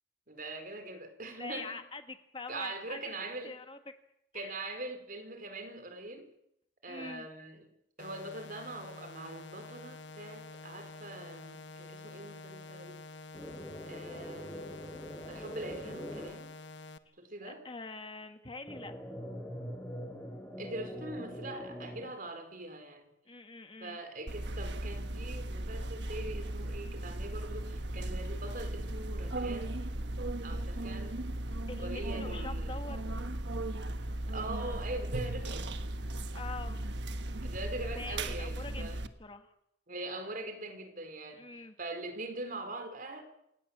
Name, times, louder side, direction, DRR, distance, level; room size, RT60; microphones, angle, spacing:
voice 1, 0.3-1.8 2.5-3.5 4.3-6.3 6.8-7.7 8.0-13.0 13.9-14.7 15.3-16.5 17.2-17.6 20.6-23.1 23.8-29.8 30.4-31.2 31.8-32.7 34.3-35.7 37.4-39.0 39.9-43.2, right 2 dB, 50° right, 7 dB, 4.4 m, -42 dB
voice 2, 1.4-3.8 4.3-4.5 6.9-7.3 17.4-18.9 23.2-24.0 31.7-33.3 36.3-36.9 37.9-39.5 41.3-41.8, left 3 dB, 30° left, 7 dB, 1.6 m, -45 dB
sound 1, 8.0-17.0, left 3 dB, 75° left, 1.2 m, -48 dB
sound 2, 13.3-16.3 18.7-22.1, equal, 10° left, 5.0 m, -43 dB
sound 3, 24.3-39.1, right 1 dB, 65° right, 1.4 m, -37 dB
28.5 x 18.0 x 7.3 m, 0.79 s
head